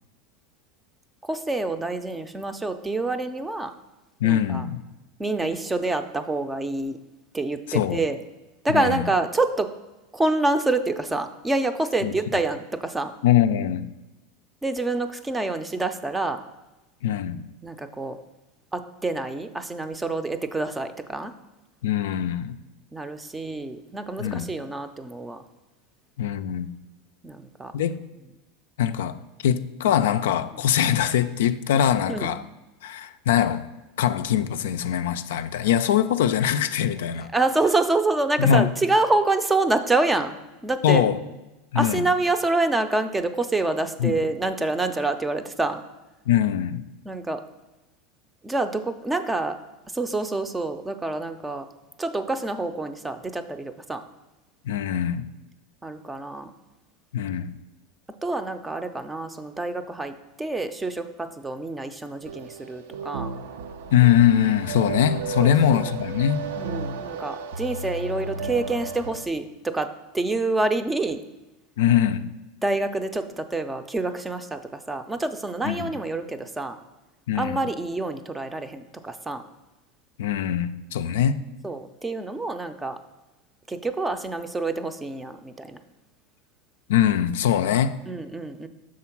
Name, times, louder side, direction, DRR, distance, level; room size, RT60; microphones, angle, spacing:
voice 1, 1.2-3.7 4.2-4.7 5.2-7.0 7.3-8.2 8.6-9.7 10.1-13.1 14.6-16.4 17.6-18.2 18.7-21.3 22.9-25.4 27.2-27.7 32.1-32.4 37.3-40.3 40.6-41.1 41.7-45.8 47.1-47.4 48.4-49.6 49.9-51.7 52.0-54.0 55.8-56.5 58.2-63.3 65.4-65.9 66.6-71.2 72.6-76.8 77.3-79.4 81.6-83.0 83.7-85.8 88.1-88.7, right 2 dB, 10° right, 0.5 m, -27 dB
voice 2, 4.2-4.8 7.7-8.0 8.7-9.0 12.0-12.1 13.2-13.9 17.0-17.4 21.8-22.6 24.2-24.5 26.2-26.7 27.7-28.0 28.8-29.2 29.4-32.4 32.8-33.7 34.0-37.3 38.4-38.7 40.8-41.2 41.7-42.0 44.0-44.2 46.3-46.8 54.6-55.3 57.1-57.5 63.9-66.5 71.8-72.3 75.6-75.9 77.3-77.6 80.2-81.4 86.9-88.0, left 10 dB, 80° left, 0.3 m, -22 dB
sound 1, 62.3-69.3, right 4 dB, 85° right, 0.5 m, -34 dB
6.2 x 3.8 x 5.8 m
supercardioid pair, 115°, 0 cm